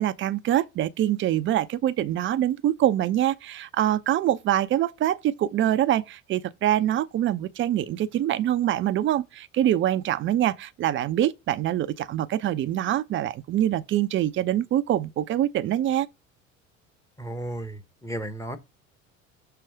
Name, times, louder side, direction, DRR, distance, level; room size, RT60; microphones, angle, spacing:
voice 1, 0.0-16.1, right 12 dB, 30° right, 0.5 m, -24 dB
voice 2, 17.2-18.6, right 1 dB, 5° left, 1.0 m, -34 dB
6.9 x 3.0 x 4.7 m
figure-of-eight pair, 70°, 40 cm